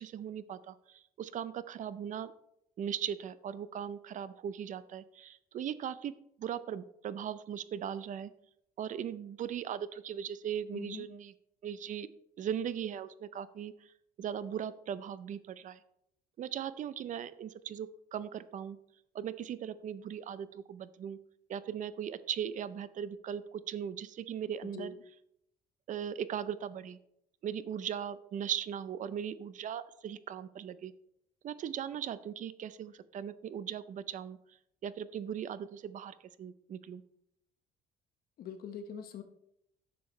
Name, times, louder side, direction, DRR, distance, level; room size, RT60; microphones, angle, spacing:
voice 1, 0.0-2.3 2.8-8.3 8.8-11.3 11.6-12.1 12.4-13.7 14.2-15.8 16.4-18.8 19.1-21.2 21.5-24.9 25.9-27.0 27.4-30.9 31.4-34.4 34.8-37.0, right 9 dB, 50° right, 15 dB, 0.5 m, -38 dB
voice 2, 10.7-11.1 24.6-25.0 38.4-39.2, left 7 dB, 60° left, 8 dB, 1.0 m, -43 dB
10.0 x 7.0 x 3.1 m, 0.76 s
cardioid pair, 110°, 17 cm